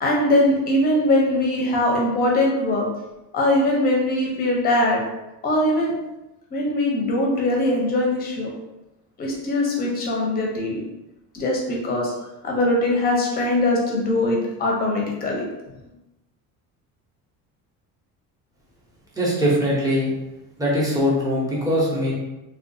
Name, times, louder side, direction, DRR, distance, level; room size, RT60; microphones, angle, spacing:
voice 1, 0.0-2.9 3.3-5.0 5.4-5.9 6.5-8.5 9.2-10.8 11.3-12.1 12.4-15.5, left 1 dB, 25° left, -1 dB, 0.6 m, -21 dB
voice 2, 19.1-20.1 20.6-22.1, equal, 10° right, -6 dB, 0.6 m, -21 dB
3.6 x 2.3 x 2.6 m, 0.97 s
cardioid pair, 175°, 36 cm